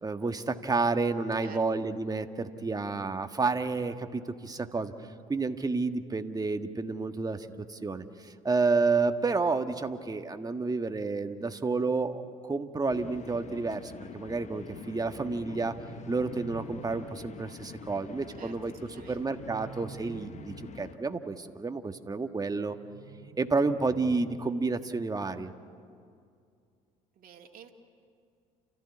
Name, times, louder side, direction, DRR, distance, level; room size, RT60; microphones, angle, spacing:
voice 1, 0.0-4.9 5.3-15.7 16.1-18.7 19.1-22.8 23.4-25.5, right 3 dB, 20° right, 7 dB, 1.6 m, -30 dB
sound 1, 12.9-21.0, left 6 dB, 40° left, 1.3 m, -46 dB
sound 2, 15.3-17.3 19.0-20.9 22.7-24.6, right 7 dB, 75° right, 1.8 m, -49 dB
voice 2, 18.8-19.2 27.2-27.7, right 8 dB, 55° right, 1 dB, 2.4 m, -50 dB
29.5 x 15.0 x 9.7 m, 2.3 s
hypercardioid pair, 65°, 18 cm